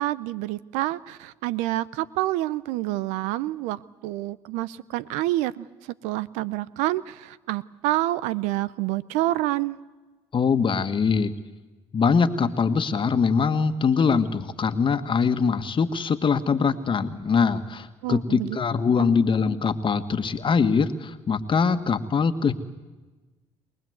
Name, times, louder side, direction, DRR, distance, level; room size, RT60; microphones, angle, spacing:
voice 1, 0.0-9.8 18.0-18.6 19.0-19.1, right 16 dB, 85° right, 19 dB, 0.7 m, -28 dB
voice 2, 10.3-11.3 11.9-22.5, left 5 dB, 45° left, 9 dB, 1.7 m, -23 dB
23.5 x 20.0 x 8.0 m, 1.2 s
supercardioid pair, 65°, 12 cm